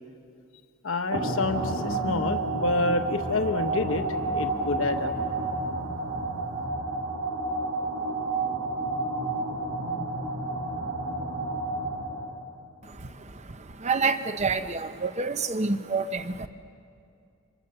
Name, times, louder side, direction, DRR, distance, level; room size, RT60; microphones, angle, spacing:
voice 1, 0.8-4.0 4.3-5.1, left 2 dB, 65° left, 6 dB, 1.1 m, -28 dB
sound 1, 1.1-12.5, right 2 dB, 55° right, 5.3 m, -30 dB
voice 2, 12.8-16.5, right 4 dB, 30° right, 10 dB, 0.8 m, -28 dB
26.5 x 25.0 x 6.9 m, 2.4 s
head